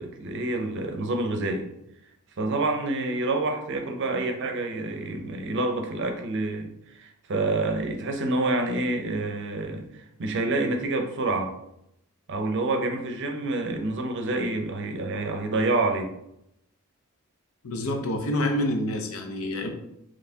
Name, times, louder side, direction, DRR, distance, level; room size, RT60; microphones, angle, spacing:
voice 1, 0.0-1.7 2.4-11.5 12.3-16.1, right 2 dB, 55° right, 4 dB, 0.6 m, -28 dB
voice 2, 17.6-19.7, left 1 dB, 65° left, 4 dB, 0.6 m, -27 dB
4.1 x 3.0 x 2.7 m, 0.80 s
head